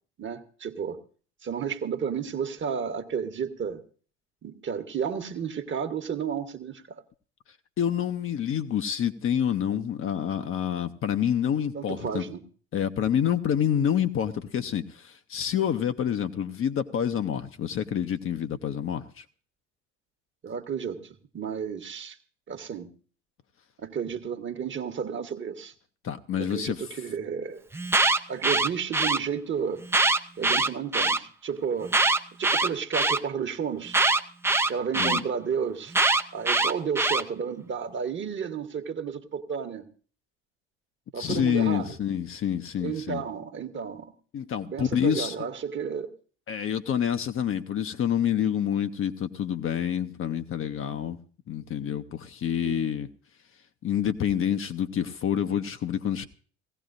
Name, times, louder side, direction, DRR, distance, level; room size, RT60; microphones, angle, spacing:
voice 1, 0.2-1.0 1.4-3.8 4.4-7.0 11.7-12.4 20.4-22.2 22.5-22.9 23.8-25.7 26.4-27.6 28.3-29.8 30.4-31.9 32.4-34.0 34.7-36.0 36.3-39.9 41.1-41.9 42.8-44.1 44.7-46.1 52.6-52.9, right 7 dB, 35° right, 1.3 m, -32 dB
voice 2, 7.8-12.2 12.7-19.2 26.0-26.9 35.0-35.2 41.1-43.2 44.3-45.3 46.5-51.2 51.5-53.1 53.8-56.3, left 9 dB, 40° left, 0.8 m, -27 dB
Alarm, 27.7-29.2 29.8-31.2 31.9-33.2 33.9-35.2 35.9-37.2, right 3 dB, 5° right, 0.5 m, -23 dB
19.0 x 16.0 x 2.6 m
hypercardioid pair, 65°, 35 cm